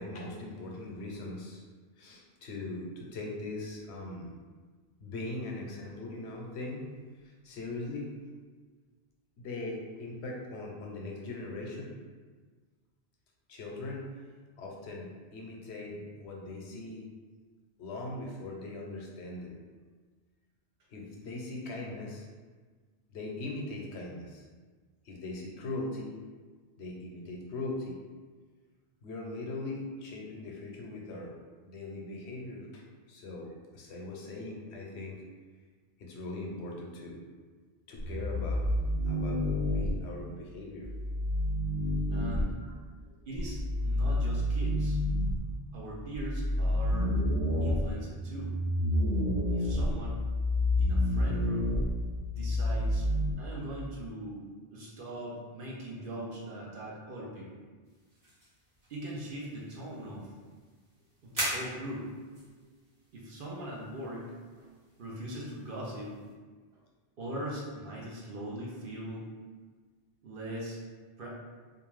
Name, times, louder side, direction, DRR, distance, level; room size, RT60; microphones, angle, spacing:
voice 1, 0.0-1.6 2.0-4.3 5.0-6.9 7.4-8.1 9.4-11.9 13.5-14.1 14.6-17.0 17.8-19.6 20.9-22.3 23.1-24.5 25.0-26.2 26.8-28.0 29.0-31.3 31.6-32.8 33.1-35.2 36.0-37.2 37.9-38.7 39.1-39.4 39.7-40.9 42.5-42.6 43.0-43.1 62.6-62.7, left 2 dB, 85° left, -1 dB, 0.9 m, -40 dB
sound 1, 38.0-39.9 40.8-42.4 43.3-45.4 46.1-53.3, left 1 dB, 20° left, 0.7 m, -29 dB
voice 2, 42.1-42.6 43.3-45.0 45.7-47.1 47.6-48.5 49.5-50.2 50.8-51.7 52.3-53.1 53.4-54.5 54.7-57.5 58.9-60.3 61.2-62.1 63.1-64.7 65.0-66.1 67.2-69.3 70.2-70.8 71.2-71.3, right 1 dB, 60° right, -4 dB, 0.8 m, -40 dB
sound 2, 57.8-66.3, right 1 dB, 20° right, 0.7 m, -43 dB
2.5 x 2.3 x 3.1 m, 1.4 s
omnidirectional pair, 1.1 m